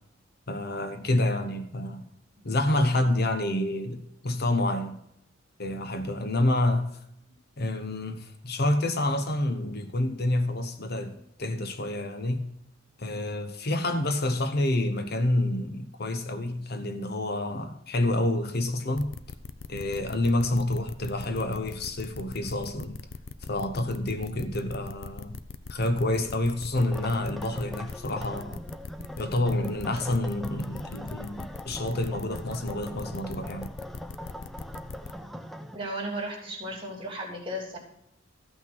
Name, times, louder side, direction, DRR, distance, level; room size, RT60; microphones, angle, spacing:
voice 1, 0.5-2.1 2.4-5.0 5.6-7.0 7.6-11.1 11.4-12.5 13.0-19.1 19.7-23.0 23.5-25.3 25.7-28.6 29.2-33.7, left 1 dB, 55° left, 1.0 m, -28 dB
sound 1, 19.0-35.1, left 4 dB, 85° left, 0.6 m, -41 dB
sound 2, 26.8-35.8, equal, ahead, 0.6 m, -42 dB
voice 2, 35.7-37.8, right 1 dB, 30° right, 3.2 m, -35 dB
14.0 x 6.0 x 6.1 m
head